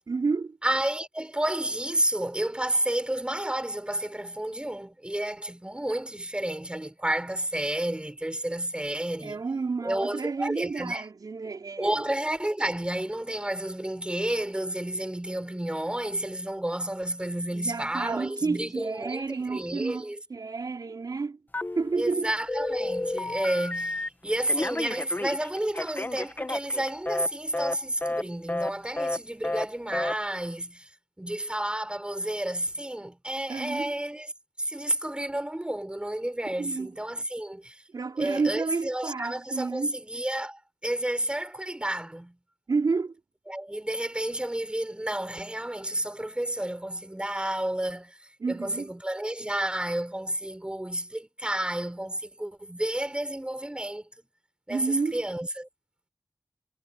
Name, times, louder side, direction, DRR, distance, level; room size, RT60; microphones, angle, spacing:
voice 1, 0.1-0.6 9.2-12.0 17.5-21.4 21.8-22.3 33.5-33.9 36.6-36.9 37.9-40.0 42.7-43.1 48.4-48.9 54.7-55.2, right 4 dB, 80° right, 4.1 m, -30 dB
voice 2, 0.6-9.4 9.8-11.0 11.8-20.2 21.9-30.9 31.2-34.3 34.6-37.8 38.2-42.4 43.5-48.2 48.5-54.1 54.7-55.7, right 1 dB, 15° right, 6.7 m, -31 dB
Telephone, 21.5-22.1 22.5-24.1 24.5-27.3 27.5-27.8 28.0-28.2 28.5-28.7 29.0-29.2 29.4-29.7 29.9-30.1, left 2 dB, 30° left, 1.5 m, -31 dB
wide cardioid pair, 75°, 6 cm